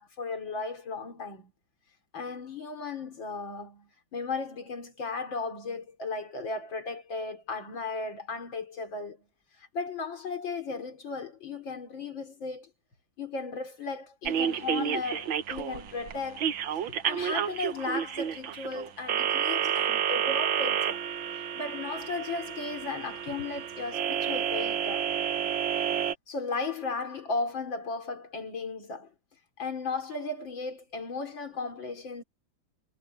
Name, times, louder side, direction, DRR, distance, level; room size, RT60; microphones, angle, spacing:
voice 1, 0.0-1.5 2.1-9.2 9.6-12.7 13.2-16.5 16.8-21.1 21.5-25.2 26.3-29.1 29.6-32.2, left 4 dB, 75° left, 4.2 m, -35 dB
sound 1, 14.2-26.1, right 9 dB, 85° right, 1.9 m, -30 dB
omnidirectional pair, 2.1 m